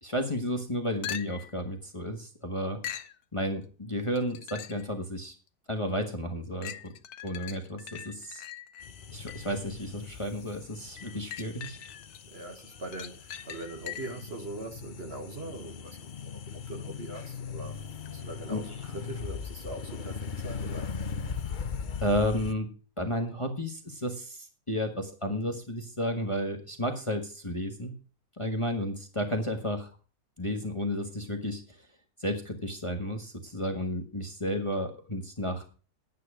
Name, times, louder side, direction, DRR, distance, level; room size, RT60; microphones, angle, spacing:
voice 1, 0.0-2.8 3.3-5.3 5.7-6.9 7.2-8.4 9.1-11.8 18.5-18.6 22.0-22.7 23.0-27.9 28.4-29.9 30.4-31.8 32.2-35.7, equal, 20° left, 4 dB, 1.4 m, -32 dB
sound 1, 1.0-1.6 2.8-3.2 4.2-4.9 5.5-5.6 6.6-9.6 11.0-12.2 12.6-14.3 18.1-18.2, left 10 dB, 70° left, 1.2 m, -42 dB
sound 2, 8.8-22.5, left 6 dB, 50° left, 0.5 m, -39 dB
voice 2, 12.3-16.4 16.7-17.8 18.1-20.9, right 2 dB, 40° right, 4 dB, 1.6 m, -41 dB
10.5 x 9.3 x 4.9 m, 0.36 s
omnidirectional pair, 1.7 m